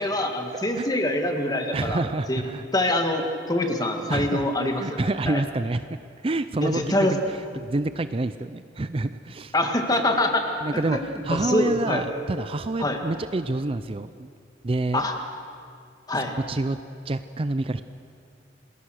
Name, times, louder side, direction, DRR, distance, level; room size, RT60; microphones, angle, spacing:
voice 1, 0.0-2.4 2.7-5.4 6.6-7.2 9.5-11.0 11.3-12.0 12.8-13.0 14.9-15.2 16.1-16.3, left 1 dB, 20° left, 4 dB, 1.9 m, -25 dB
voice 2, 0.5-0.9 1.7-2.7 4.1-4.5 4.8-5.9 6.2-9.5 10.6-11.0 11.3-14.3 14.6-15.0 16.3-16.8 17.0-17.8, right 2 dB, 30° right, 12 dB, 0.5 m, -28 dB
27.5 x 19.5 x 6.5 m, 2.4 s
head